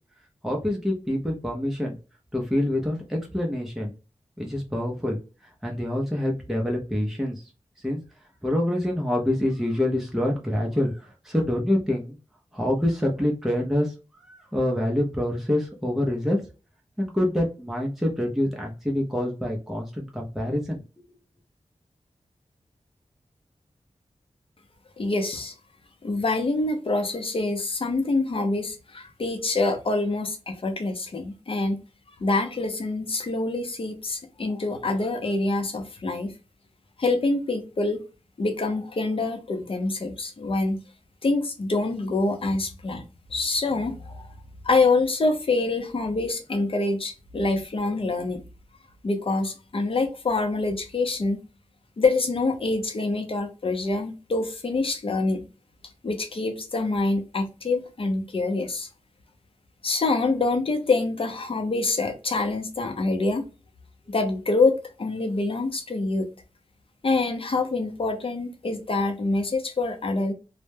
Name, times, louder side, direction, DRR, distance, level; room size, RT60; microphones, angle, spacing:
voice 1, 0.4-2.0 2.3-3.9 4.4-7.4 7.8-8.0 8.4-12.2 12.5-13.9 14.3-16.4 17.0-20.8, left 1 dB, ahead, -1 dB, 0.5 m, -26 dB
voice 2, 25.0-25.5 26.0-31.8 32.2-36.3 37.0-38.0 38.4-40.8 41.2-43.0 43.3-44.3 44.6-48.4 49.0-51.4 52.0-55.5 56.0-58.9 59.8-63.4 64.1-66.3 67.0-70.3, left 3 dB, 45° left, 5 dB, 0.6 m, -26 dB
2.1 x 2.1 x 3.2 m, 0.32 s
wide cardioid pair, 90°, 13 cm